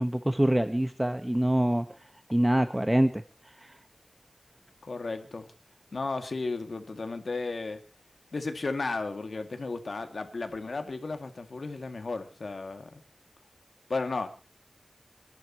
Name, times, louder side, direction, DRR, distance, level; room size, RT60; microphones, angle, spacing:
voice 1, 0.0-1.9 2.3-3.2 3.6-3.7, right 1 dB, 15° right, 9 dB, 1.2 m, -25 dB
voice 2, 4.8-5.5 5.9-7.8 8.3-13.0 13.9-14.3, left 3 dB, 85° left, 7 dB, 2.1 m, -34 dB
29.0 x 11.5 x 2.9 m, 0.30 s
wide cardioid pair, 50°, 0 cm